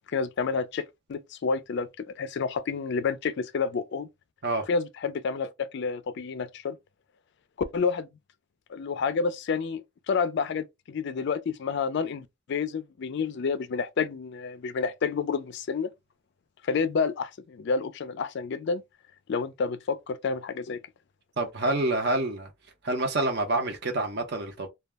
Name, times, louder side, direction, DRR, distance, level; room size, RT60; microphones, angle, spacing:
voice 1, 0.1-4.1 4.7-6.8 7.7-8.1 8.7-15.9 16.6-18.8 19.3-20.8, left 5 dB, 50° left, 0.3 m, -29 dB
voice 2, 21.4-22.5 22.8-24.7, right 2 dB, 50° right, 0.7 m, -27 dB
2.2 x 2.0 x 3.3 m
head